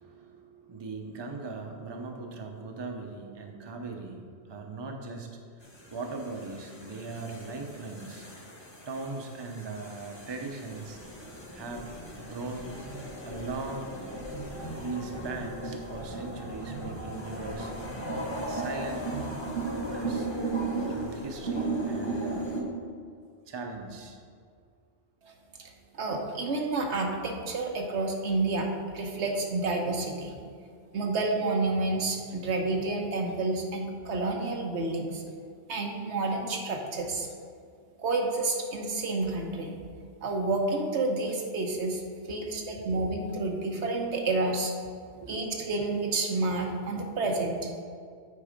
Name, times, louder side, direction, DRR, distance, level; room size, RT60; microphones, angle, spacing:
voice 1, 0.0-5.4 5.9-8.3 8.9-11.0 11.5-11.9 12.2-12.7 13.2-13.9 14.7-17.7 18.4-19.0 19.7-20.3 20.9-22.5 23.5-24.2 45.1-45.6, right 3 dB, 30° right, 3 dB, 0.7 m, -39 dB
sound 1, 5.6-22.6, right 2 dB, 25° left, 1.2 m, -36 dB
voice 2, 25.6-28.7 28.9-30.3 30.9-35.2 35.7-37.3 38.0-39.8 40.2-42.0 42.3-44.7 45.3-47.7, right 2 dB, 85° right, 2 dB, 1.3 m, -29 dB
8.4 x 4.7 x 5.1 m, 2.2 s
omnidirectional pair, 1.1 m